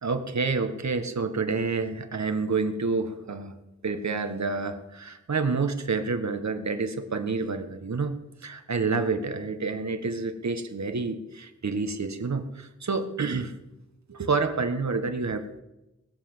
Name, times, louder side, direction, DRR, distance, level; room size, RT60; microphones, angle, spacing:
voice 1, 0.0-3.6 3.8-13.5 14.1-15.6, right 4 dB, 65° right, 8 dB, 1.5 m, -28 dB
20.5 x 7.6 x 7.4 m, 0.98 s
wide cardioid pair, 70°, 30 cm